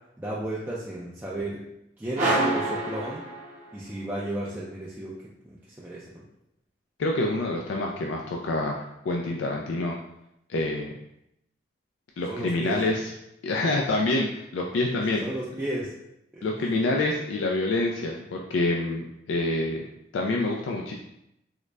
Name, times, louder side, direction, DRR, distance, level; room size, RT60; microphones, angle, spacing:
voice 1, 0.2-1.6 2.0-3.2 3.7-5.1 5.4-6.2 12.3-12.8 15.2-15.9 16.3-16.8, right 1 dB, 10° right, -7 dB, 0.3 m, -33 dB
sound 1, 2.2-3.9, right 2 dB, 40° right, 0.8 m, -27 dB
voice 2, 7.0-9.9 10.5-10.9 12.2-13.1 13.4-15.2 16.4-19.9 20.1-21.0, left 2 dB, 80° left, 0 dB, 0.4 m, -27 dB
3.7 x 2.1 x 3.3 m, 0.82 s
head